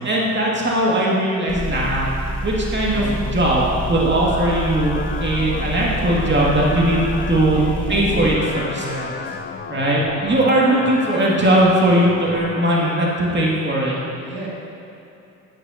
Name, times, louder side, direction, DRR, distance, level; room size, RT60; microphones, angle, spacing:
voice 1, 0.0-2.1 2.4-7.6 7.9-8.8 9.7-14.0, right 1 dB, 30° right, -4 dB, 2.3 m, -19 dB
Motor vehicle (road) / Engine, 1.5-8.4, right 1 dB, 5° left, 1.4 m, -27 dB
voice 2, 2.9-3.3 7.5-9.3 10.0-10.4 10.7-10.9 14.3-14.5, right 2 dB, 70° right, -5 dB, 2.1 m, -32 dB
sound 1, 3.5-13.5, left 5 dB, 25° left, 0.7 m, -33 dB
11.0 x 11.0 x 2.9 m, 2.7 s
hypercardioid pair, 50°, 38 cm